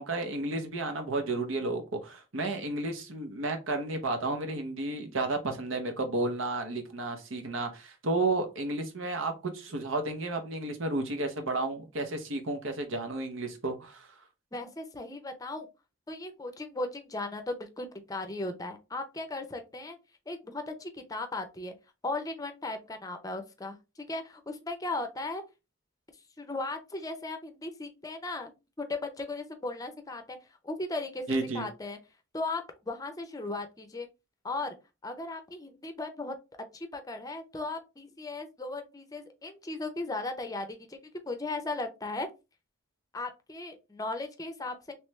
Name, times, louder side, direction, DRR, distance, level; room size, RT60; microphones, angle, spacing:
voice 1, 0.0-14.1 31.3-31.7, right 2 dB, 85° right, 0.9 m, -32 dB
voice 2, 14.5-15.7 16.1-20.0 20.3-21.7 22.0-25.4 26.4-28.5 28.8-30.4 30.6-32.0 32.3-34.1 34.4-34.8 35.0-36.3 36.7-42.3 43.1-44.9, left 2 dB, 20° left, 0.5 m, -37 dB
3.3 x 3.1 x 3.1 m
head